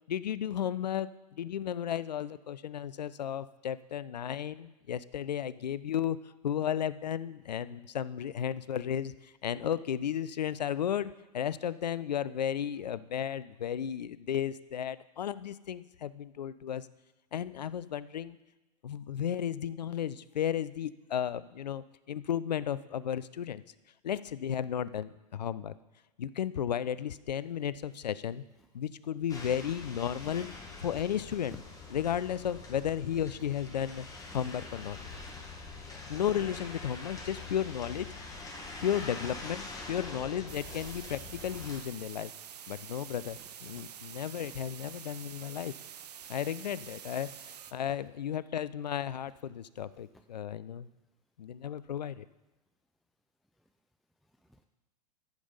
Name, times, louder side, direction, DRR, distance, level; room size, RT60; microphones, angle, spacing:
voice 1, 0.1-6.2 6.4-16.9 17.3-18.4 18.8-23.6 24.0-25.7 26.2-28.4 28.7-30.5 30.8-31.6 31.9-34.1 34.3-35.0 36.1-38.1 38.8-42.3 42.7-45.7 46.3-50.9 51.4-52.3, left 9 dB, 80° left, 17 dB, 0.5 m, -34 dB
sound 1, 29.3-41.8, left 3 dB, 15° left, 2.1 m, -44 dB
voice 2, 34.2-34.8 35.0-35.7 42.9-43.9 44.4-45.4 46.2-46.3 47.7-47.9 53.6-53.7 54.2-54.7, equal, ahead, 6 dB, 0.4 m, -58 dB
sound 2, 40.5-47.7, right 9 dB, 75° right, 0.7 m, -47 dB
14.0 x 5.2 x 5.5 m, 1.0 s
hypercardioid pair, 100°, 21 cm